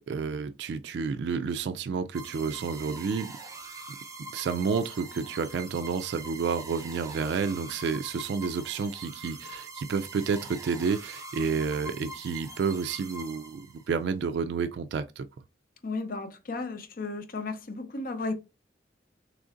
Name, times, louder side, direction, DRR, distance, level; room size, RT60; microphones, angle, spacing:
voice 1, 0.1-3.4 4.3-15.3, right 5 dB, 70° right, 0.3 m, -30 dB
sound 1, 2.1-14.0, right 3 dB, 20° right, 0.5 m, -43 dB
voice 2, 15.8-18.3, left 3 dB, 50° left, 0.6 m, -34 dB
3.7 x 3.1 x 2.5 m
head